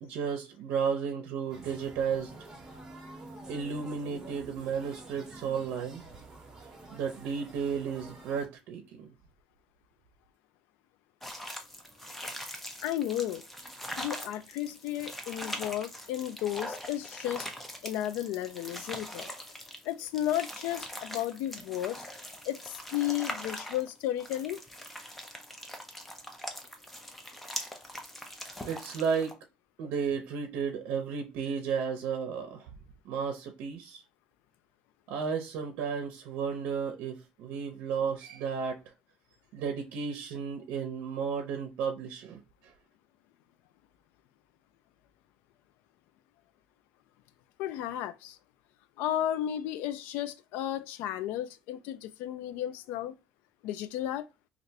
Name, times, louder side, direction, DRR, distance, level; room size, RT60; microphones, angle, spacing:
voice 1, 0.0-2.3 3.5-6.0 6.9-9.1 28.6-29.4 29.8-32.7 33.0-34.0 35.1-38.8 39.5-42.7, right 6 dB, 75° right, 0.6 m, -33 dB
sound 1, 1.5-8.5, right 2 dB, 15° right, 0.9 m, -48 dB
sound 2, 11.2-29.3, equal, 5° left, 0.5 m, -42 dB
voice 2, 12.8-13.4 14.0-17.5 17.8-19.3 19.8-22.1 22.4-24.6 47.6-48.4 49.0-53.1 53.6-54.3, left 12 dB, 85° left, 0.4 m, -33 dB
3.2 x 2.5 x 2.7 m
cardioid pair, 165°, 3 cm